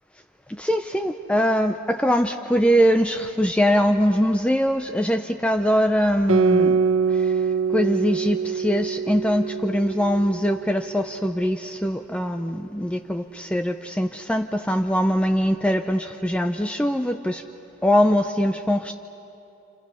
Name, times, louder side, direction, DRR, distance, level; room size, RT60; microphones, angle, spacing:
voice 1, 0.5-6.8 7.1-17.4 17.8-18.9, equal, 5° left, 5 dB, 0.5 m, -22 dB
Guitar, 6.3-11.2, right 5 dB, 70° right, 1.0 m, -24 dB
29.5 x 28.5 x 5.5 m, 2.9 s
head